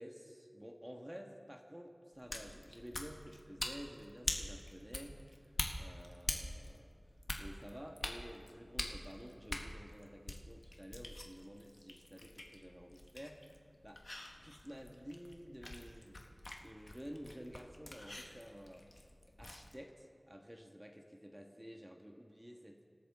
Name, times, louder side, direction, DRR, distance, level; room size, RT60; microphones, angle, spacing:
voice 1, 0.0-14.0 14.4-22.9, equal, 15° right, 2 dB, 1.4 m, -52 dB
sound 1, 2.1-19.7, left 1 dB, 60° left, 1.3 m, -45 dB
27.0 x 13.5 x 3.6 m, 2.4 s
wide cardioid pair, 50°, 0 cm